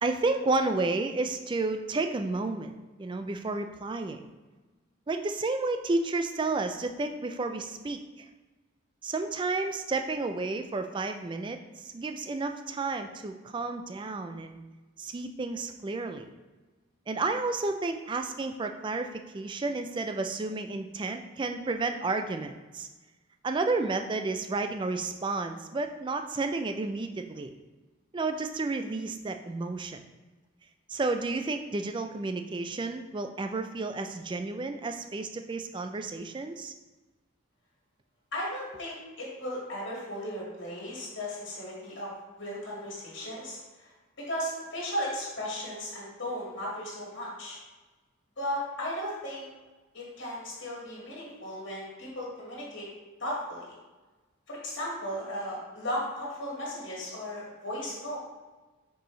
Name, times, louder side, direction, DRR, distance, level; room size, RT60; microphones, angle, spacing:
voice 1, 0.0-2.7 3.0-4.3 5.1-8.3 9.0-14.6 15.0-16.3 17.1-22.9 23.4-27.5 28.1-30.0 30.9-36.7, right 3 dB, 20° right, 7 dB, 0.3 m, -31 dB
voice 2, 38.3-42.1 42.4-43.9 44.3-47.6 48.4-49.5 49.9-52.8 53.2-53.6 54.5-58.2, equal, 55° left, -5 dB, 1.8 m, -36 dB
6.4 x 4.6 x 3.1 m, 1.2 s
head